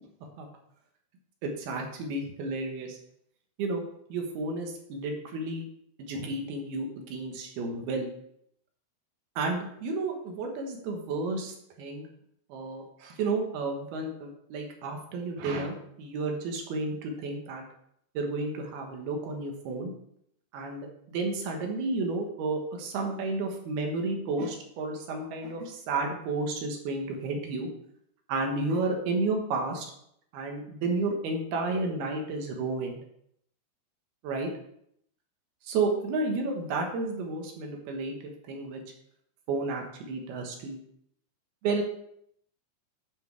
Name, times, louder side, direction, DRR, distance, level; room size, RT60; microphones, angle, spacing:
voice 1, 1.4-3.0 3.6-3.8 4.1-5.6 6.0-8.1 9.4-12.1 12.5-17.6 18.1-19.9 20.5-27.7 28.3-29.9 30.3-33.0 34.2-34.5 35.6-38.1 38.5-38.8 39.5-40.8 41.6-41.8, right 3 dB, 70° right, 2 dB, 3.0 m, -32 dB
9.6 x 5.9 x 4.6 m, 0.71 s
omnidirectional pair, 4.8 m